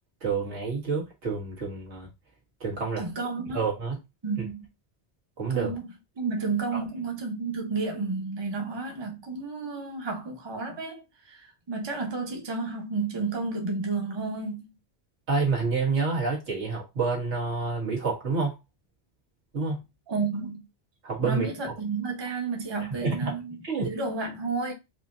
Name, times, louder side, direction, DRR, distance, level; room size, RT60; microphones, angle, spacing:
voice 1, 0.2-2.1 2.6-3.0 3.5-3.9 5.4-5.7 15.3-18.5 19.5-19.8 21.0-21.5 23.0-23.3 23.7-23.9, right 4 dB, 85° right, 1.9 m, -28 dB
voice 2, 3.0-3.6 4.2-4.7 5.5-5.9 6.2-14.7 20.1-20.6 21.2-24.7, right 4 dB, 25° right, 0.9 m, -31 dB
4.8 x 2.8 x 2.5 m
omnidirectional pair, 1.1 m